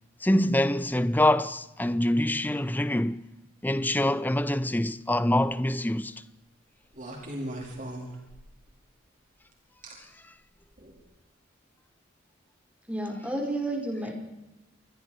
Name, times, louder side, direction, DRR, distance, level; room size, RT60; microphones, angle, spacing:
voice 1, 0.2-3.2 3.6-6.1, left 1 dB, 10° left, 0.7 m, -25 dB
sound 1, 5.2-5.6 6.9-8.7 9.8-9.9 10.8-11.0, right 1 dB, 40° right, 5.1 m, -38 dB
voice 2, 12.9-14.1, right 1 dB, 5° right, 4.9 m, -31 dB
28.5 x 22.0 x 4.8 m
head